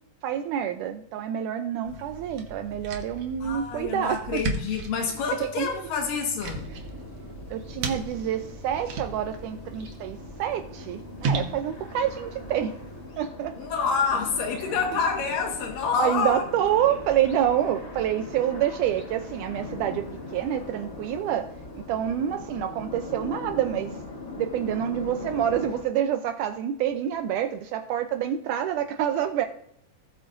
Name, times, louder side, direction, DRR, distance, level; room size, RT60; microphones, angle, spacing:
voice 1, 0.2-4.4 5.4-5.9 7.5-12.8 13.2-13.6 14.7-15.0 16.0-20.1 20.3-21.5 21.8-24.0 24.4-29.5, right 10 dB, 80° right, 7 dB, 2.1 m, -27 dB
sound 1, 1.8-13.1, right 4 dB, 60° right, 1.9 m, -37 dB
voice 2, 3.4-6.7 13.6-16.4, left 5 dB, 85° left, 2 dB, 3.3 m, -27 dB
sound 2, 6.5-25.8, left 2 dB, 55° left, 0.7 m, -40 dB
17.5 x 8.1 x 2.6 m, 0.73 s
omnidirectional pair, 3.8 m